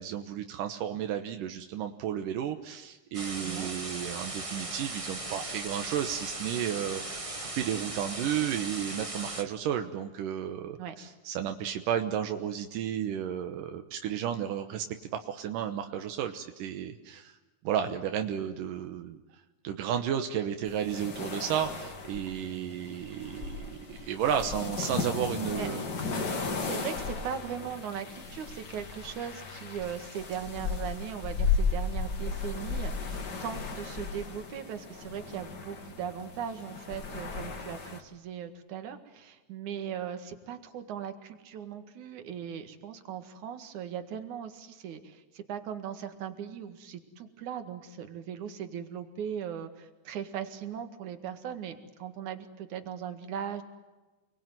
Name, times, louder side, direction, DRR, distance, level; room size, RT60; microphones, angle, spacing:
voice 1, 0.0-14.9 15.2-17.4 17.6-19.2 19.6-25.9, right 9 dB, 85° right, 6 dB, 2.7 m, -33 dB
sound 1, 3.1-9.4, right 2 dB, 30° right, 0.5 m, -38 dB
sound 2, 20.7-38.0, left 4 dB, 35° left, 2.3 m, -35 dB
voice 2, 26.6-53.6, right 8 dB, 65° right, 8 dB, 3.2 m, -39 dB
29.5 x 21.5 x 9.3 m, 1.2 s
omnidirectional pair, 3.8 m